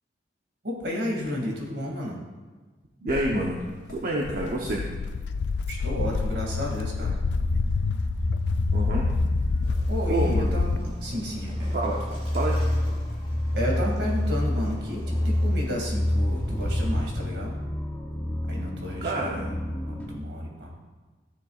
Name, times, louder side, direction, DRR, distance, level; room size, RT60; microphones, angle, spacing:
voice 1, 0.6-2.2 5.7-7.2 9.9-11.8 12.1-12.2 13.5-17.6 18.5-19.5 19.9-20.7, equal, 75° right, -1 dB, 2.2 m, -32 dB
voice 2, 3.0-3.6 3.9-4.9 8.7-9.1 10.1-10.6 11.7-11.9 12.3-12.6 19.0-19.5, right 1 dB, 55° right, -2 dB, 0.8 m, -27 dB
Walk footsteps, 3.1-10.8, left 4 dB, 75° left, 0.3 m, -28 dB
sound 1, 7.1-20.2, left 1 dB, 10° left, 0.7 m, -28 dB
Waves surf, 9.6-17.2, equal, 35° right, 2.0 m, -39 dB
13.0 x 6.8 x 2.4 m, 1.3 s
head